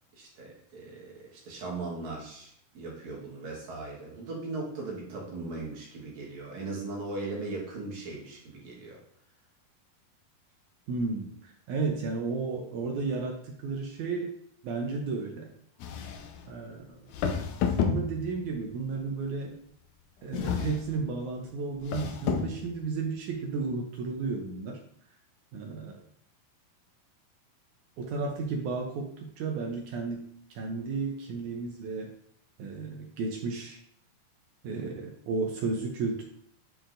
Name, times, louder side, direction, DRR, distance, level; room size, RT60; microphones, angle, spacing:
voice 1, 0.2-9.0, right 3 dB, 60° right, -3 dB, 2.5 m, -38 dB
voice 2, 10.9-14.3 14.6-15.5 16.5-16.9 17.8-19.6 20.2-24.8 25.5-26.0 28.0-30.2 30.5-32.1 32.6-33.8 34.6-36.2, right 4 dB, 75° right, 1 dB, 1.8 m, -33 dB
sound 1, 15.8-16.5 17.1-18.5 20.3-21.1 21.8-22.7, left 7 dB, 85° left, 1.7 m, -30 dB
9.5 x 4.4 x 2.6 m, 0.66 s
omnidirectional pair, 4.2 m